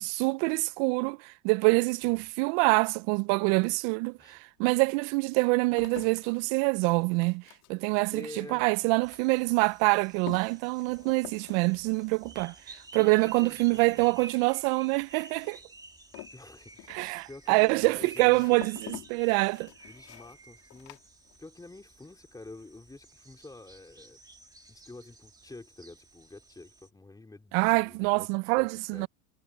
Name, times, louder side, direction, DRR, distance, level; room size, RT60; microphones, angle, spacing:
voice 1, 0.0-7.4 7.7-15.6 16.9-19.7 27.5-29.1, right 28 dB, 55° right, 0.6 m, -26 dB
sound 1, 3.8-3.9 4.6-21.8 22.0-22.6, left 23 dB, 60° left, 3.6 m, -49 dB
voice 2, 8.1-8.7 12.9-14.2 16.3-18.7 19.9-21.0 21.4-24.2 24.7-28.7 28.9-29.1, left 2 dB, 10° left, 4.2 m, -48 dB
sound 2, 9.0-26.9, right 3 dB, 10° right, 1.8 m, -52 dB
supercardioid pair, 120°, 43 cm